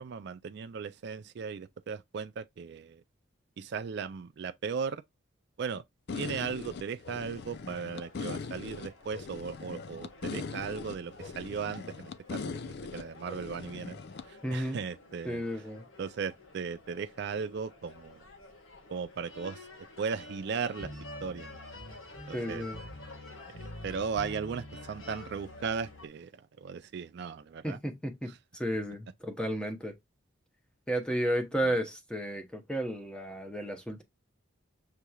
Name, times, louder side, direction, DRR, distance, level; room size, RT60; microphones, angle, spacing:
voice 1, 0.0-3.0 3.6-5.0 5.6-5.8 6.1-14.0 14.2-15.4 16.0-18.2 18.9-19.7 20.0-20.9 21.2-21.5 22.3-22.6 23.5-27.8 28.3-28.4 31.6-31.8, right 6 dB, 55° right, 0.3 m, -37 dB
sound 1, 6.1-14.2, left 4 dB, 55° left, 0.4 m, -40 dB
sound 2, 7.1-26.1, left 2 dB, 85° left, 1.6 m, -49 dB
voice 2, 14.4-14.8 15.2-15.9 22.3-22.8 27.6-29.9 30.9-34.0, right 1 dB, 5° left, 0.8 m, -33 dB
6.6 x 3.0 x 2.3 m
head